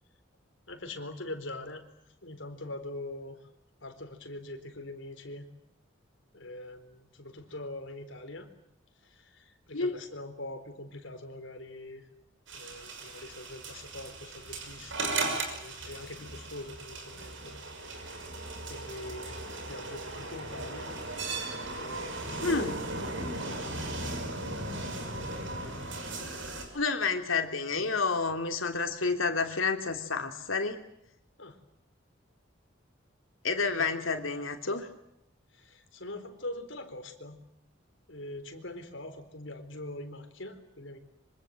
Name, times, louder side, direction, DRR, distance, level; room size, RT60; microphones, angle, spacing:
voice 1, 0.7-1.8 2.2-3.4 3.8-5.5 6.3-8.5 9.0-12.1 12.5-17.6 17.9-18.3 18.7-20.9 21.5-22.8 23.1-23.7 24.6-25.9 31.4-31.6 33.8-33.9 35.5-37.4 38.1-41.0, left 1 dB, 70° left, 7 dB, 4.1 m, -43 dB
sound 1, 12.5-26.6, right 2 dB, 70° right, 6.3 m, -37 dB
voice 2, 22.4-22.8 26.7-30.8 33.4-34.9, left 4 dB, 90° left, 5 dB, 3.2 m, -29 dB
25.5 x 25.0 x 7.9 m, 0.76 s
head